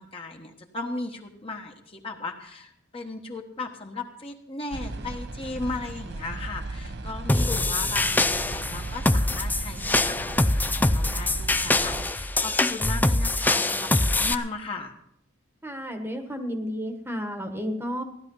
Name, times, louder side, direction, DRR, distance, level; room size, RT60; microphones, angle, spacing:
voice 1, 0.0-14.9, left 3 dB, 30° left, 2 dB, 1.3 m, -36 dB
sound 1, 4.7-12.1, right 2 dB, 60° right, 1.0 m, -36 dB
sound 2, 7.3-14.3, left 2 dB, 10° left, 0.4 m, -24 dB
voice 2, 15.6-18.0, equal, 10° right, 5 dB, 1.4 m, -32 dB
16.0 x 11.5 x 5.5 m, 0.74 s
head